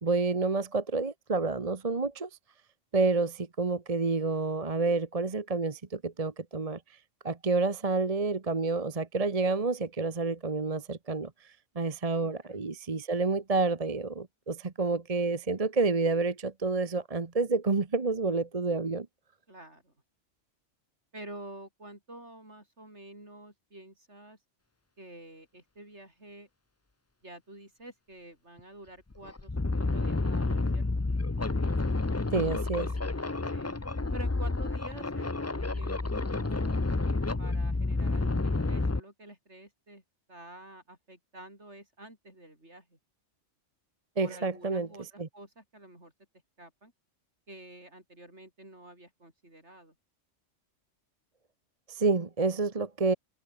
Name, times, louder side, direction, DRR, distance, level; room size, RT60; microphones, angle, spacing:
voice 1, 0.0-2.3 2.9-6.8 7.2-11.3 11.7-19.1 32.3-32.9 44.2-45.3 51.9-53.1, right 3 dB, 30° right, 1.2 m, -29 dB
voice 2, 12.2-12.6 19.5-19.9 21.1-24.4 25.0-26.5 27.2-29.5 29.8-31.0 33.5-33.8 34.1-36.9 37.4-40.0 40.3-43.0 44.2-46.1 46.6-46.9 47.5-49.9, right 1 dB, 65° right, 8.3 m, -49 dB
sound 1, 28.6-28.7 29.1-39.0, left 3 dB, 15° left, 0.6 m, -30 dB
omnidirectional pair, 1.2 m